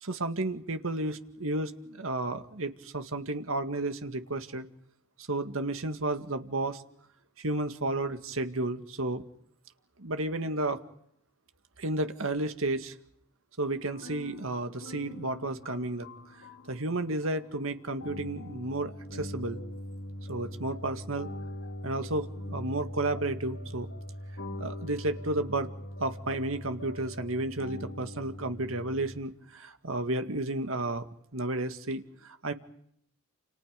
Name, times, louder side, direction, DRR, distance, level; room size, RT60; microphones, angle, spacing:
voice 1, 0.0-4.7 5.2-6.8 7.4-9.2 10.0-10.8 11.8-12.9 13.6-16.1 16.7-19.6 20.3-21.3 21.8-23.9 24.6-25.7 26.0-31.1 31.3-32.5, right 2 dB, 85° right, 8 dB, 2.1 m, -32 dB
sound 1, 13.9-29.2, equal, 80° left, 4.6 m, -42 dB
30.0 x 29.0 x 5.3 m, 0.72 s
head